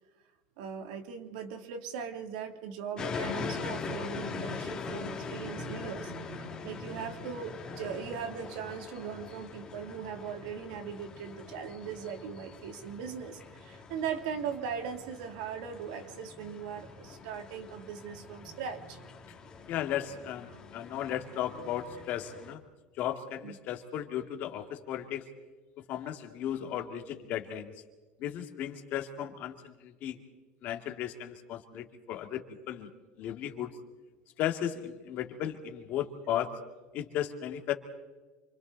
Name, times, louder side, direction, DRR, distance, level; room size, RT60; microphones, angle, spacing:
voice 1, 0.6-19.0 23.4-23.6, right 7 dB, 70° right, 5 dB, 3.0 m, -39 dB
sound 1, 3.0-22.5, left 4 dB, 20° left, 2.4 m, -42 dB
voice 2, 19.7-22.6 23.0-25.2 25.9-27.7 28.2-30.2 30.6-32.9 33.2-33.8 34.4-36.5 36.9-37.7, left 10 dB, 40° left, 6 dB, 2.2 m, -35 dB
28.5 x 25.5 x 4.1 m, 1.2 s
cardioid pair, 175°, 4 cm